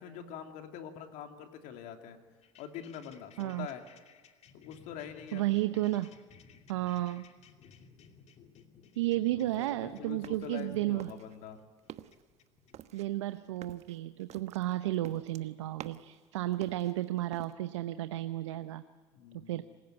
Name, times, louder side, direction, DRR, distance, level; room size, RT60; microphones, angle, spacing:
voice 1, 0.0-2.2 2.6-3.8 4.5-5.5 9.3-11.6 19.1-19.6, left 9 dB, 65° left, 5 dB, 3.0 m, -44 dB
sound 1, 2.4-13.0, left 6 dB, 50° left, 2.7 m, -59 dB
voice 2, 5.3-6.1 6.7-7.4 8.9-11.1 12.9-18.8 19.3-19.6, right 15 dB, 85° right, 11 dB, 0.8 m, -33 dB
sound 2, 9.5-10.7 11.0-11.5 11.8-12.2 12.7-16.2 16.5-17.5, right 11 dB, 50° right, 1.2 m, -49 dB
26.5 x 16.5 x 9.4 m, 1.4 s
hypercardioid pair, 75°, 15 cm